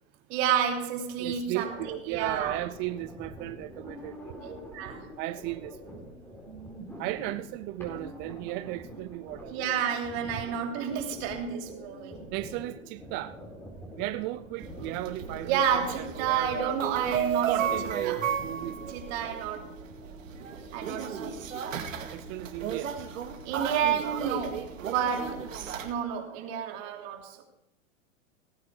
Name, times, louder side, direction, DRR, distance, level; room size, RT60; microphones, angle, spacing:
voice 1, 0.3-1.8 2.1-2.6 4.4-5.1 9.5-12.2 15.4-17.7 18.0-18.3 18.9-19.8 20.7-21.8 23.4-27.4, right 8 dB, 55° right, 3.1 m, -30 dB
voice 2, 1.2-4.3 5.2-6.1 7.0-9.5 12.3-13.4 14.0-16.8 17.5-19.4 22.1-22.9, right 16 dB, 30° right, 0.4 m, -35 dB
sound 1, 1.7-18.7, equal, 5° left, 4.4 m, -45 dB
sound 2, 14.6-25.9, right 8 dB, 80° right, 2.2 m, -34 dB
18.5 x 9.5 x 4.7 m
hypercardioid pair, 115°, 39 cm